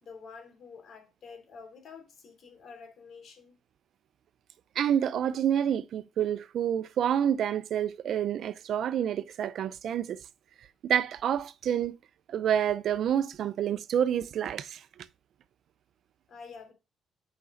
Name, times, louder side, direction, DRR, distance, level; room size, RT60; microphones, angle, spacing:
voice 1, 0.0-3.6 16.3-16.7, left 5 dB, 65° left, 3.1 m, -48 dB
voice 2, 4.8-10.2 10.8-12.0 12.3-14.8, right 9 dB, 70° right, 0.6 m, -28 dB
8.4 x 5.2 x 3.8 m
cardioid pair, 90°, 0 cm